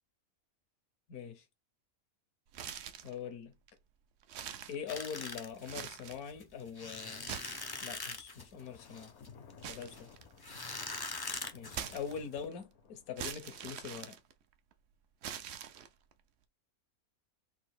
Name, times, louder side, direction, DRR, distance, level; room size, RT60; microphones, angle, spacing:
voice 1, 1.1-1.4 3.0-3.5 4.7-7.4 7.8-9.1 9.6-10.1 11.5-14.2, left 7 dB, 80° left, 1.5 m, -43 dB
sound 1, 2.5-3.2 3.7-3.8 4.2-5.2 5.6-6.3 7.1-8.1 9.6-10.7 11.7-12.5 13.2-14.7 15.2-16.1, right 9 dB, 65° right, 0.6 m, -44 dB
sound 2, 4.9-12.4, left 3 dB, 35° left, 0.3 m, -43 dB
Thunder, 8.3-13.6, left 6 dB, 60° left, 0.9 m, -58 dB
4.1 x 2.6 x 4.7 m
omnidirectional pair, 1.6 m